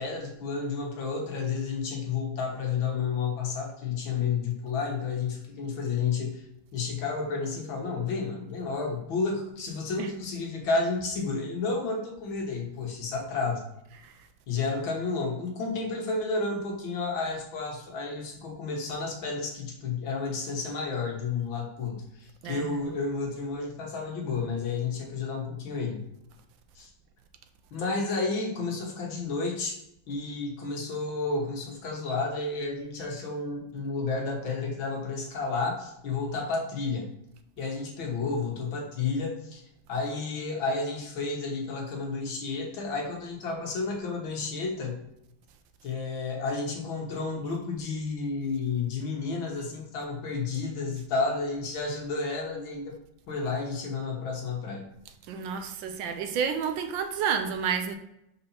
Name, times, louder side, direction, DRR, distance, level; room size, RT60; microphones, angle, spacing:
voice 1, 0.0-6.4 6.7-13.6 14.5-26.0 26.8-26.9 27.7-29.8 30.1-37.1 37.6-39.6 39.9-45.0 45.8-53.0 53.3-54.8, left 4 dB, 80° left, 0 dB, 2.1 m, -31 dB
voice 2, 22.4-22.9 55.3-58.0, right 7 dB, 80° right, 8 dB, 1.3 m, -30 dB
5.1 x 4.1 x 5.7 m, 0.81 s
omnidirectional pair, 2.1 m